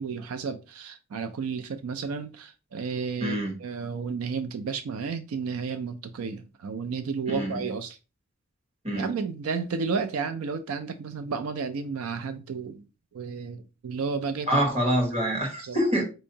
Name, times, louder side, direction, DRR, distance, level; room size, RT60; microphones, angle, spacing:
voice 1, 0.0-8.0 8.9-12.8 13.1-14.6 15.6-15.8, right 5 dB, 85° right, 0.4 m, -32 dB
voice 2, 3.2-3.5 7.3-7.7 8.8-9.1 14.5-16.0, equal, 30° right, 1.2 m, -26 dB
4.3 x 2.7 x 2.7 m
head